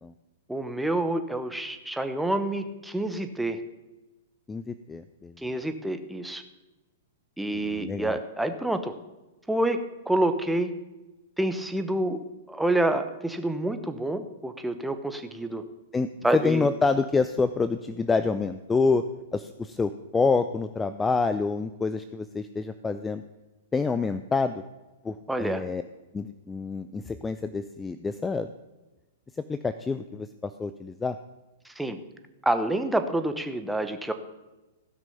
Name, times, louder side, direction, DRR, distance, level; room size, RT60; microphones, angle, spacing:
voice 1, 0.5-3.6 5.4-6.4 7.4-8.9 9.5-9.8 10.1-10.7 11.4-12.2 12.5-15.6 16.2-16.7 25.3-25.6 31.6-32.0 32.4-34.1, right 1 dB, 5° right, 8 dB, 1.0 m, -27 dB
voice 2, 4.5-5.3 7.6-8.2 15.9-19.0 19.3-23.2 23.7-24.6 25.0-25.8 26.1-28.5 29.5-31.2, left 4 dB, 15° left, 12 dB, 0.5 m, -27 dB
16.0 x 6.1 x 5.7 m, 1.1 s
hypercardioid pair, 115°, 0 cm